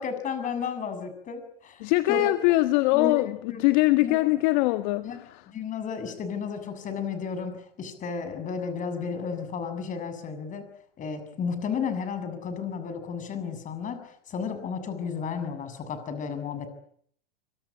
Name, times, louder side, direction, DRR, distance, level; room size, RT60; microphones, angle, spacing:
voice 1, 0.0-2.3 2.9-3.6 4.0-4.2 5.0-5.2 5.5-10.7 11.0-16.7, left 6 dB, 25° left, 10 dB, 7.2 m, -33 dB
voice 2, 1.8-5.4, left 19 dB, 50° left, 10 dB, 1.7 m, -23 dB
25.5 x 25.0 x 8.6 m, 0.65 s
hypercardioid pair, 125°, 29 cm